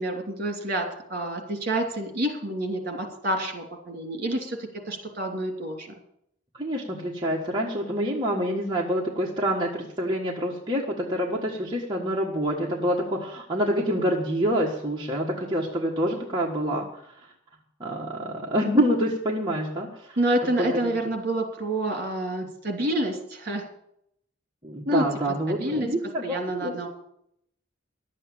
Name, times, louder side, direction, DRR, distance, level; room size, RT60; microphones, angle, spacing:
voice 1, 0.0-5.9 20.2-23.7 24.8-25.1 25.5-25.9 26.2-26.9, right 1 dB, 50° right, 3 dB, 2.9 m, -28 dB
voice 2, 6.5-16.9 17.1-17.2 17.8-20.2 20.6-20.7 24.6-26.9, equal, 20° right, -3 dB, 1.5 m, -27 dB
12.0 x 8.4 x 8.6 m, 0.73 s
head